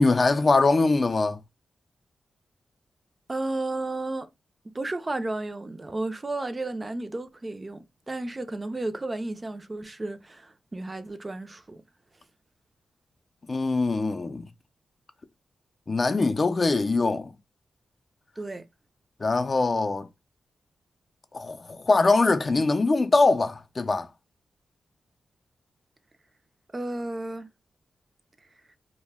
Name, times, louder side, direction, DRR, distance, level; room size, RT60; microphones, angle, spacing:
voice 1, 0.0-1.4 13.5-14.5 15.9-17.3 19.2-20.1 21.3-24.1, left 3 dB, 45° left, 0.4 m, -22 dB
voice 2, 3.3-4.3 4.7-11.8 18.4-18.6 26.7-27.5, right 2 dB, 30° right, 0.4 m, -33 dB
2.1 x 2.1 x 3.3 m
cardioid pair, 60°, 0 cm